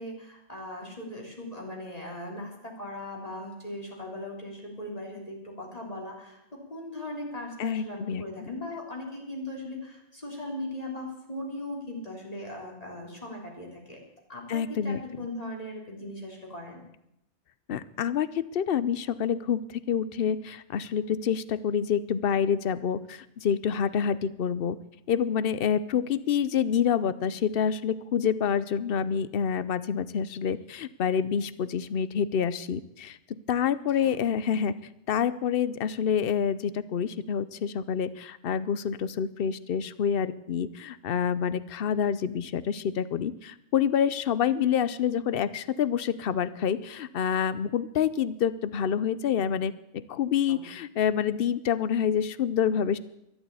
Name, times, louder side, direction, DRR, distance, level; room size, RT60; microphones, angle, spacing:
voice 1, 0.0-14.0 14.3-16.8 34.0-34.2 50.5-50.7, left 1 dB, 30° left, -1 dB, 3.8 m, -39 dB
voice 2, 7.6-8.5 14.5-15.0 17.7-24.8 25.1-34.8 35.1-53.0, left 8 dB, 55° left, 16 dB, 0.8 m, -27 dB
13.0 x 11.0 x 8.4 m, 0.84 s
omnidirectional pair, 1.2 m